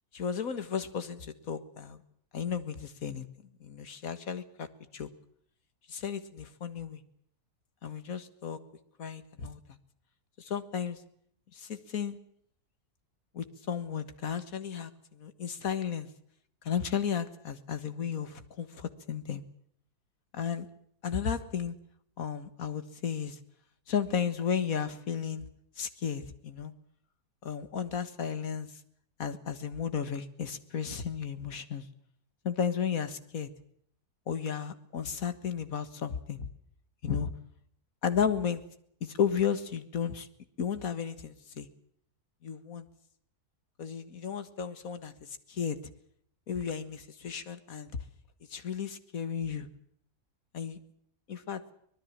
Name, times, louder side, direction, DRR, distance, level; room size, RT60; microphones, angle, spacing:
voice 1, 0.1-2.0 2.3-3.3 3.6-4.7 4.9-5.1 5.9-7.0 7.8-8.6 9.0-9.6 10.4-11.0 11.5-12.2 13.3-16.1 16.6-19.4 20.3-20.7 21.0-21.8 22.2-23.4 23.9-25.5 25.8-26.7 27.4-28.7 29.2-31.9 32.4-33.5 34.3-36.5 37.0-37.3 38.0-38.6 39.0-40.3 40.6-41.7 42.4-42.9 43.8-45.1 45.5-45.8 46.5-47.9 48.5-49.7 50.5-50.8 51.3-51.6, left 7 dB, 60° left, 11 dB, 2.0 m, -33 dB
24.5 x 19.5 x 7.4 m, 0.68 s
omnidirectional pair, 1.7 m